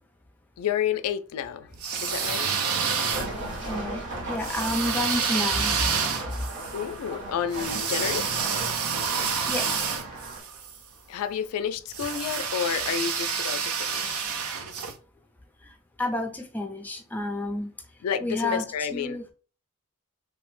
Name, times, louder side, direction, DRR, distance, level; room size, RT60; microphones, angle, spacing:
voice 1, 0.6-1.7 2.0-2.5 6.7-8.3 11.1-14.2 18.0-19.2, left 8 dB, 80° left, 0.3 m, -30 dB
sound 1, 1.7-3.6 4.4-10.8 11.9-14.9, right 6 dB, 70° right, 0.5 m, -28 dB
sound 2, 3.1-10.4, right 2 dB, 55° right, 1.1 m, -37 dB
voice 2, 3.7-4.0 4.3-5.8 9.5-9.7 16.0-17.7 18.2-18.6 18.9-19.2, left 1 dB, 10° left, 0.4 m, -30 dB
3.2 x 2.0 x 3.1 m
head